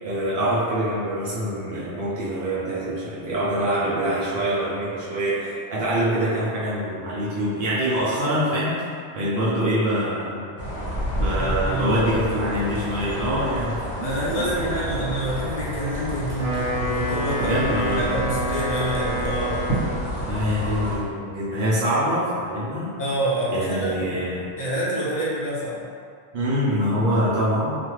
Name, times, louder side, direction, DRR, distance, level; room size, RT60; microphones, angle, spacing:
voice 1, 0.0-8.8 9.1-10.5 11.1-14.8 17.3-18.0 20.3-22.9 23.5-24.5 26.3-27.8, equal, 65° right, -8 dB, 0.7 m, -25 dB
sound 1, 10.6-21.0, equal, 75° left, 1.0 m, -30 dB
voice 2, 11.3-12.3 14.0-17.6 17.9-19.6 23.0-24.2 24.6-25.9, right 1 dB, 45° left, -7 dB, 0.7 m, -27 dB
Wind instrument woodwind instrument, 16.2-20.1, right 1 dB, 85° right, 1.1 m, -28 dB
2.5 x 2.3 x 2.9 m, 2.3 s
omnidirectional pair, 1.2 m